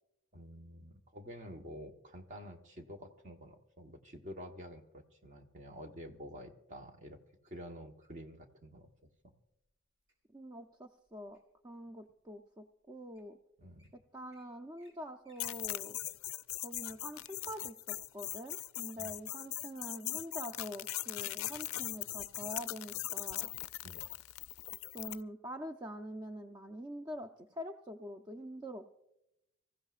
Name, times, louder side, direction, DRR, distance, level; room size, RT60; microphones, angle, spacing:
voice 1, 0.3-8.9 9.2-9.3 13.6-13.8 19.0-19.1 23.8-24.1, equal, 35° right, 4 dB, 1.2 m, -49 dB
Wild animals, 7.5-8.2 8.9-9.2 9.7-10.1 10.7-11.6 12.2-12.3 12.9-13.0 13.1-13.3 13.6-13.9 14.3-14.4 14.7-14.9 15.2-17.4 17.8-17.9, left 1 dB, 75° right, 4.6 m, -70 dB
voice 2, 10.3-11.4 11.6-13.4 14.1-16.0 16.6-23.5 24.9-29.0, equal, 20° right, 5 dB, 0.5 m, -45 dB
sound 1, 15.4-25.2, left 17 dB, 90° left, 0.4 m, -40 dB
25.0 x 15.0 x 2.5 m, 0.85 s
head